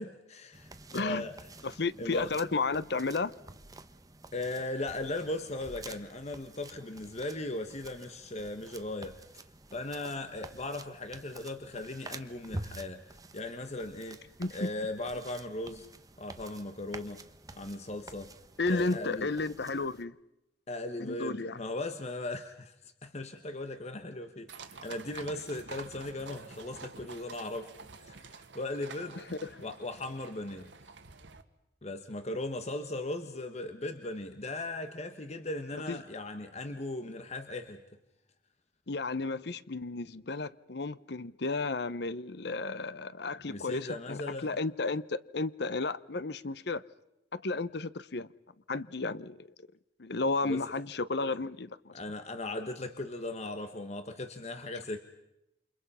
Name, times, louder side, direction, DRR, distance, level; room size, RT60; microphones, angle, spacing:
voice 1, 0.0-1.5 2.0-2.3 4.3-9.2 9.7-14.2 14.5-15.9 16.2-17.2 17.5-18.3 18.7-19.3 20.7-27.7 28.0-29.2 29.6-30.7 31.8-37.8 43.4-44.6 50.4-50.6 51.9-55.0, left 2 dB, 40° left, 1.2 m, -38 dB
sound 1, 0.5-20.0, right 2 dB, 20° right, 1.2 m, -49 dB
voice 2, 0.9-1.2 1.6-3.3 14.4-14.7 18.6-20.1 21.0-21.6 29.3-29.6 35.9-36.0 38.9-46.8 47.3-48.3 48.7-49.5 50.0-51.9, left 3 dB, 65° left, 0.9 m, -33 dB
sound 2, 24.5-31.4, right 4 dB, 85° right, 1.8 m, -48 dB
29.0 x 27.0 x 5.6 m
head